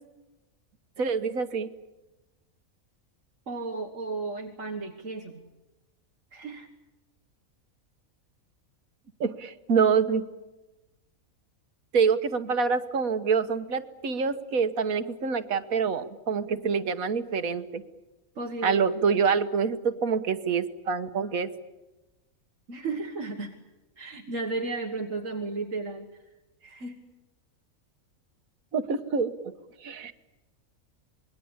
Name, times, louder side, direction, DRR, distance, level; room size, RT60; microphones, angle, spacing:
voice 1, 1.0-1.7 9.2-10.3 11.9-17.8 18.6-21.5 28.7-29.5 29.8-30.1, right 5 dB, 80° right, 10 dB, 1.6 m, -26 dB
voice 2, 3.5-5.4 6.3-6.7 18.4-18.8 22.7-23.5 24.0-26.1 26.6-27.0, right 3 dB, 65° right, 3 dB, 2.0 m, -34 dB
27.0 x 21.0 x 8.8 m, 1.1 s
omnidirectional pair, 1.5 m